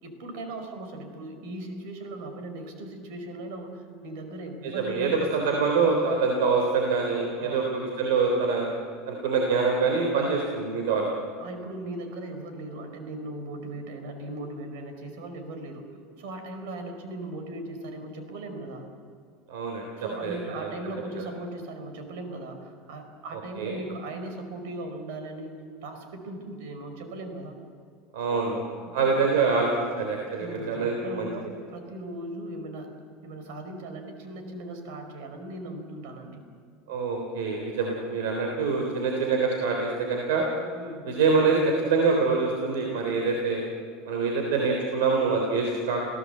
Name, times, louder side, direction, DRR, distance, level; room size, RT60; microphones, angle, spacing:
voice 1, 0.0-5.3 7.4-7.7 10.2-10.4 11.4-15.9 16.2-18.8 20.0-27.6 28.3-28.6 29.0-29.2 30.4-32.9 33.2-36.4 40.7-41.1, right 2 dB, 70° right, 6 dB, 4.7 m, -38 dB
voice 2, 4.6-8.7 9.1-11.1 19.5-19.9 20.2-20.7 23.3-23.8 28.1-28.6 28.9-29.7 30.0-31.3 36.9-40.5 41.0-43.6 44.1-46.1, right 4 dB, 90° right, 1 dB, 3.5 m, -25 dB
29.0 x 16.5 x 7.9 m, 2.2 s
supercardioid pair, 170°, 0 cm